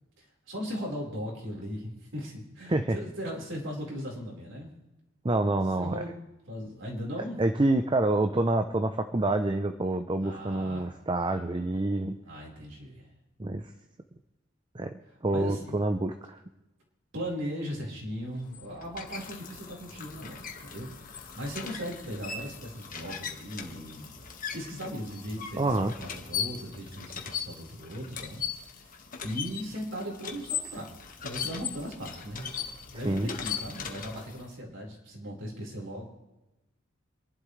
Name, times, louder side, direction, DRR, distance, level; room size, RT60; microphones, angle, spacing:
voice 1, 0.2-4.8 5.8-6.2 6.5-7.4 10.2-11.0 12.2-13.1 15.3-15.8 17.1-24.1 24.5-28.4 28.7-28.9 29.2-30.9 31.2-32.5 32.9-36.1, equal, 65° right, -2 dB, 4.5 m, -38 dB
voice 2, 5.2-6.0 7.4-12.2 13.4-13.7 14.7-16.4 25.6-25.9 33.0-33.3, right 2 dB, 25° right, 7 dB, 0.6 m, -27 dB
sound 1, 18.3-34.5, left 7 dB, 45° left, 1.5 m, -39 dB
27.5 x 11.5 x 3.3 m, 1.0 s
head